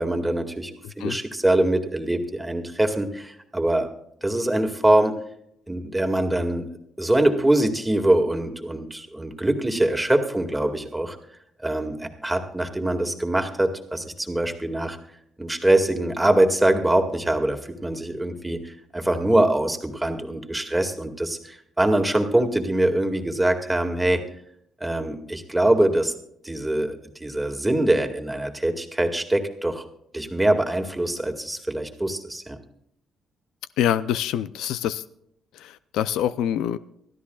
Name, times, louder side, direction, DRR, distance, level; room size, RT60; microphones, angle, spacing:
voice 1, 0.0-3.9 4.2-5.1 5.7-6.7 7.0-11.2 11.6-15.0 15.4-24.2 24.8-26.1 26.4-29.8 30.1-32.6, right 1 dB, 10° right, 4 dB, 2.0 m, -23 dB
voice 2, 0.8-1.2 33.8-35.0 35.5-36.8, left 10 dB, 90° left, 15 dB, 0.4 m, -25 dB
24.0 x 13.5 x 2.4 m, 0.73 s
cardioid pair, 90°, 0 cm